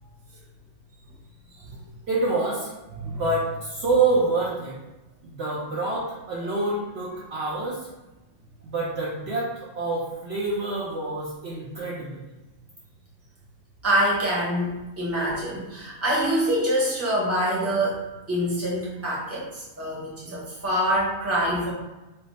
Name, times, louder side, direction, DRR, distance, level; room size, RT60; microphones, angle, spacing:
voice 1, 2.1-4.7 5.2-7.8 8.6-12.2, right 3 dB, 60° right, -5 dB, 0.8 m, -27 dB
voice 2, 2.9-3.2 6.4-6.6 13.8-18.0 18.3-21.7, equal, 10° right, -6 dB, 0.9 m, -25 dB
3.4 x 2.0 x 4.1 m, 1.1 s
omnidirectional pair, 1.4 m